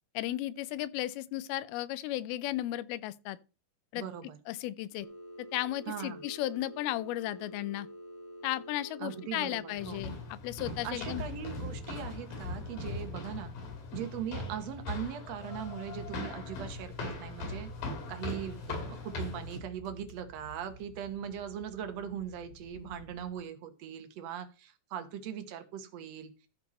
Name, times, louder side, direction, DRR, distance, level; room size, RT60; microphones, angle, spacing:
voice 1, 0.1-3.4 3.9-4.0 4.5-5.1 5.4-7.9 8.4-11.2, left 14 dB, 85° left, 2.5 m, -35 dB
voice 2, 4.0-4.4 5.9-6.2 9.0-10.0 10.8-13.5 13.9-17.7 18.1-26.5, right 9 dB, 65° right, 1.7 m, -40 dB
Telephone, 5.0-10.0, equal, 15° right, 1.1 m, -47 dB
sound 1, 9.8-19.6, left 3 dB, 65° left, 4.6 m, -40 dB
sound 2, 15.7-23.4, right 2 dB, 45° left, 1.6 m, -52 dB
13.5 x 5.4 x 4.2 m
omnidirectional pair, 4.4 m